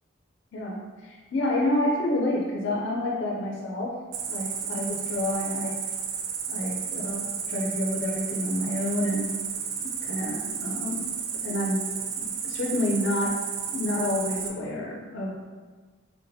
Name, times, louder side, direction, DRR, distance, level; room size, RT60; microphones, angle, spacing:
voice 1, 0.5-4.0 4.3-5.8 6.5-9.3 9.8-11.1 11.4-11.9 12.2-13.4 13.7-15.5, left 1 dB, 65° left, -1 dB, 0.4 m, -29 dB
Cricket, 4.1-14.5, right 7 dB, 75° right, 0.3 m, -32 dB
3.8 x 2.1 x 2.6 m, 1.4 s
head